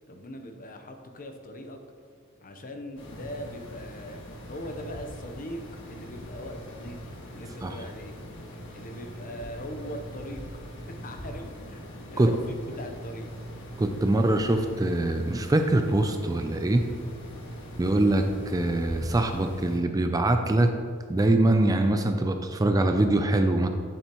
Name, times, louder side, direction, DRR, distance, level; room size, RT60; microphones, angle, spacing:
voice 1, 0.1-1.8 2.4-4.2 4.5-5.6 5.9-7.0 7.3-8.2 8.7-10.4 10.9-13.3, equal, 40° left, 5 dB, 0.8 m, -40 dB
sound 1, 3.0-19.8, equal, 60° left, 1.5 m, -42 dB
voice 2, 13.8-16.9 17.8-20.7 21.1-23.7, right 1 dB, 15° right, 6 dB, 0.4 m, -23 dB
10.5 x 7.0 x 3.0 m, 2.1 s
head